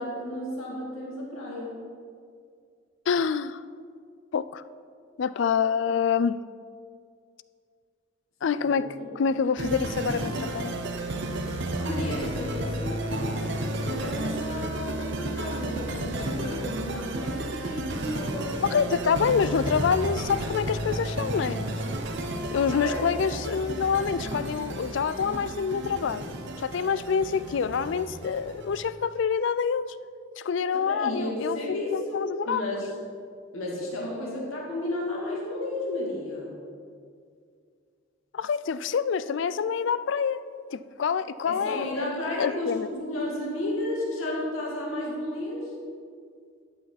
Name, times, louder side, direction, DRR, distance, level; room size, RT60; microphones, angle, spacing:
voice 1, 0.0-1.7 8.6-9.1 11.8-18.9 22.7-23.0 30.7-32.9 33.5-36.6 41.5-45.7, left 1 dB, 90° left, -3 dB, 2.6 m, -33 dB
voice 2, 3.1-3.6 4.3-4.6 5.2-6.4 8.4-8.9 9.2-10.8 18.7-21.7 22.5-29.8 30.4-31.6 31.9-32.6 38.3-40.4 40.7-42.1 42.4-42.9, left 6 dB, 60° left, 15 dB, 0.3 m, -26 dB
sound 1, 9.6-28.9, right 1 dB, 55° right, 0.9 m, -32 dB
13.5 x 8.6 x 4.1 m, 2.2 s
head